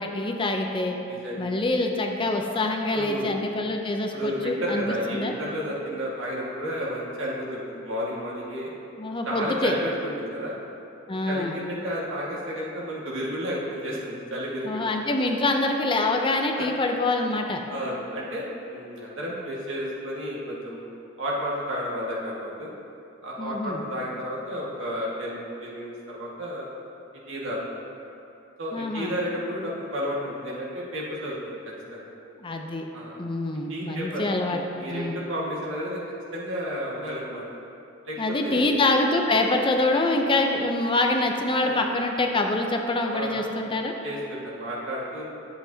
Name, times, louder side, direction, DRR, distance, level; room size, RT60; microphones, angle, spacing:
voice 1, 0.0-1.0 1.4-5.3 9.0-9.8 11.1-11.6 14.6-17.6 23.4-23.8 28.7-29.2 32.4-32.9 33.2-34.6 34.9-35.2 38.2-43.9, left 2 dB, 25° left, 3 dB, 0.5 m, -25 dB
voice 2, 1.0-1.5 2.9-3.3 4.1-8.7 9.3-10.6 11.3-15.1 16.6-16.7 17.7-20.8 21.2-22.7 23.2-26.7 27.3-27.6 28.6-31.6 31.9-32.1 32.9-33.2 33.7-36.0 36.3-37.4 38.0-38.7 41.6-41.9 43.1-43.5 44.0-45.2, equal, 75° right, -5 dB, 1.8 m, -32 dB
11.0 x 7.7 x 2.8 m, 2.7 s
head